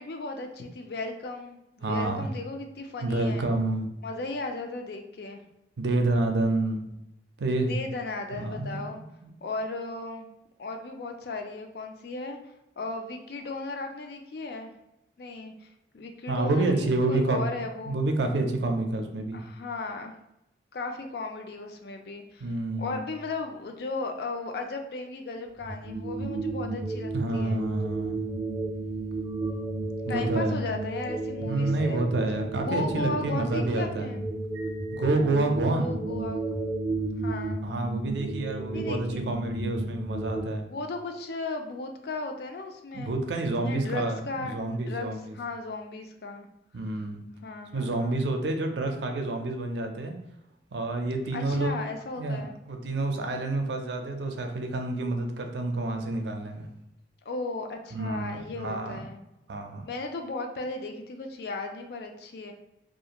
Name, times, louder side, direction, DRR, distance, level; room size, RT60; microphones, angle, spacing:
voice 1, 0.0-3.5 4.0-5.4 7.7-9.0 9.4-10.3 10.6-12.4 12.8-14.7 15.2-18.0 19.3-20.1 20.7-22.5 22.8-27.6 30.1-32.0 32.6-34.2 35.7-36.5 37.2-37.6 38.7-39.3 40.7-43.1 43.6-46.5 47.4-48.2 51.3-52.5 57.3-59.2 59.8-62.5, left 3 dB, 60° left, 4 dB, 0.3 m, -36 dB
voice 2, 1.8-2.3 3.0-3.9 5.8-6.8 7.4-7.8 8.4-9.4 16.3-17.4 17.9-19.4 22.4-23.1 27.1-28.2 30.1-30.7 31.4-34.1 34.9-35.9 37.6-40.7 42.9-45.3 46.7-47.2 47.7-50.1 50.7-51.8 52.2-56.7 57.9-59.0 59.5-59.8, right 2 dB, 75° right, 4 dB, 0.4 m, -28 dB
sound 1, 25.6-40.4, right 2 dB, 15° right, 0.4 m, -33 dB
2.4 x 2.4 x 2.8 m, 0.86 s
head